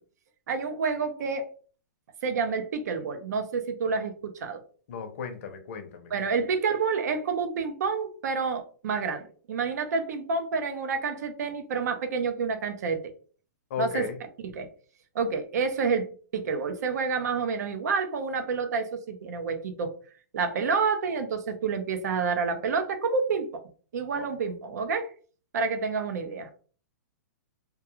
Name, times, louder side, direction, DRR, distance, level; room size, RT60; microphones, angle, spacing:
voice 1, 0.5-1.5 2.2-4.6 6.1-13.1 13.8-14.1 14.4-14.7 15.1-16.1 16.3-19.9 20.3-23.5 23.9-25.1 25.5-26.5, right 5 dB, 65° right, 7 dB, 0.5 m, -28 dB
voice 2, 4.9-6.1 13.7-14.2 24.2-24.3, left 6 dB, 45° left, 6 dB, 0.6 m, -35 dB
2.3 x 2.2 x 2.9 m, 0.41 s
hypercardioid pair, 160°, 10 cm